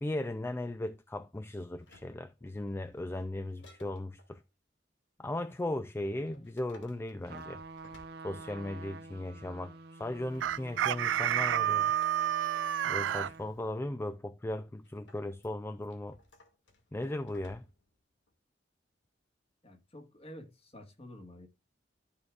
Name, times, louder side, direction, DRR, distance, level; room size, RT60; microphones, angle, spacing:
voice 1, 0.0-4.4 5.2-7.6 8.2-11.9 12.9-16.2 16.9-17.6, left 1 dB, 15° left, 0.3 m, -37 dB
sound 1, 1.8-4.4 6.0-8.8 10.1-12.8 14.8-17.9 18.3-18.4, left 2 dB, 80° left, 2.1 m, -60 dB
Trumpet, 7.2-13.5, right 4 dB, 60° right, 0.7 m, -46 dB
Chicken rooster, 10.4-13.3, right 11 dB, 80° right, 0.3 m, -29 dB
voice 2, 19.6-21.5, left 1 dB, 35° left, 1.6 m, -50 dB
13.0 x 4.8 x 2.4 m
head